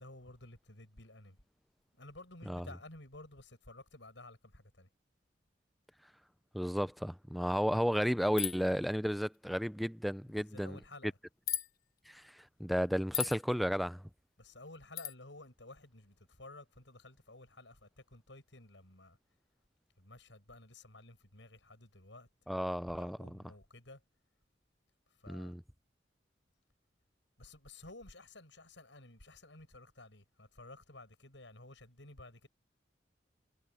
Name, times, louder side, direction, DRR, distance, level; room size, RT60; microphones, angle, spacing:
voice 1, 0.0-1.4 1.9-4.9 10.3-11.2 14.4-19.2 20.0-22.3 22.6-24.0 25.1-25.5 27.4-32.5, left 2 dB, 85° left, 7.1 m, -54 dB
voice 2, 6.5-10.8 12.1-14.0 22.5-23.4 25.3-25.6, equal, ahead, 0.3 m, -33 dB
sound 1, 8.4-8.7 11.5-11.7 13.1-13.4 15.0-15.1, left 10 dB, 50° left, 1.5 m, -35 dB
head